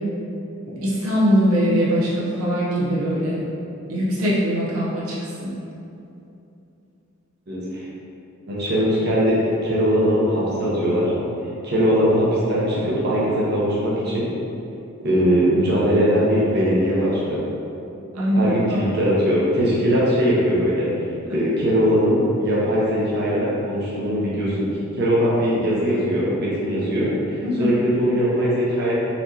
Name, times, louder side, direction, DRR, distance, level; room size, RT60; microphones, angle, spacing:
voice 1, 0.6-3.4 3.9-5.5 18.1-19.0 21.3-21.4 27.4-27.8, equal, 85° right, -7 dB, 0.7 m, -22 dB
voice 2, 7.5-7.8 8.5-11.1 11.6-14.3 15.0-17.4 18.4-20.9 21.3-24.6 25.0-28.9, equal, 50° right, -7 dB, 0.8 m, -20 dB
4.3 x 3.0 x 2.7 m, 2.8 s
head